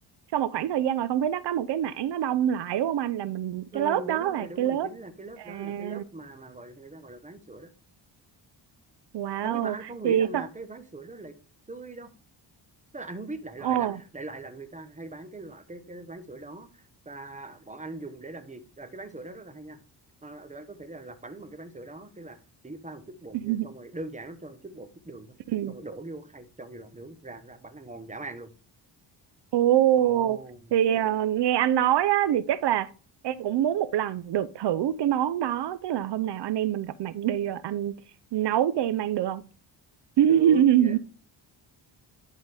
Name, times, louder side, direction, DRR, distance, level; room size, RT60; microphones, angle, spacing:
voice 1, 0.3-4.9 5.4-6.0 9.1-9.7 10.0-10.4 13.6-14.0 23.3-23.7 25.5-25.7 29.5-30.4 30.7-32.9 33.2-38.0 38.3-39.4 40.2-41.0, right 11 dB, 65° right, 0.6 m, -25 dB
voice 2, 3.7-7.7 9.4-11.4 11.7-12.1 12.9-19.8 20.2-25.4 25.7-28.5 29.9-30.7 40.3-41.0, right 2 dB, 15° right, 1.1 m, -41 dB
10.5 x 4.0 x 3.4 m
cardioid pair, 95°, 44 cm